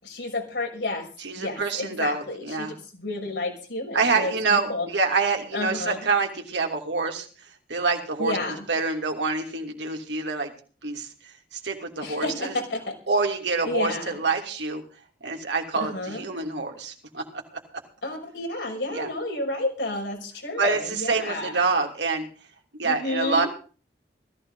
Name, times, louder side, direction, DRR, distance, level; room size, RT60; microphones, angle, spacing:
voice 1, 0.0-1.1 1.3-2.7 2.9-4.9 5.5-6.1 8.2-8.7 12.0-12.9 13.7-14.2 15.8-16.2 18.0-21.6 22.8-23.5, left 2 dB, 85° left, 0 dB, 6.1 m, -30 dB
voice 2, 1.2-2.7 3.9-7.3 7.7-8.4 8.7-10.5 10.8-11.1 11.5-12.5 13.1-14.8 15.2-17.4 18.9-19.1 20.6-22.3 22.8-23.5, right 4 dB, 90° right, 3 dB, 3.0 m, -26 dB
17.5 x 14.5 x 4.0 m, 0.39 s
head